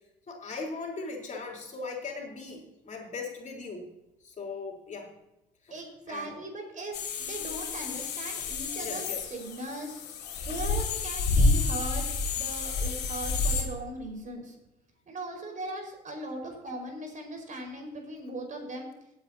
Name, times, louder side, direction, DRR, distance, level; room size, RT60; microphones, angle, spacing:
voice 1, 0.3-3.9 4.2-5.1 5.6-5.8 6.1-6.4 7.9-8.0 8.3-8.4 8.7-9.3, left 4 dB, 40° left, -1 dB, 3.9 m, -39 dB
voice 2, 5.7-10.0 10.4-12.0 12.3-14.6 15.1-18.9, right 1 dB, 40° right, 2 dB, 4.9 m, -39 dB
sound 1, 6.9-13.6, left 3 dB, 60° left, 2.9 m, -29 dB
18.5 x 9.0 x 2.8 m, 0.94 s
hypercardioid pair, 65°, 20 cm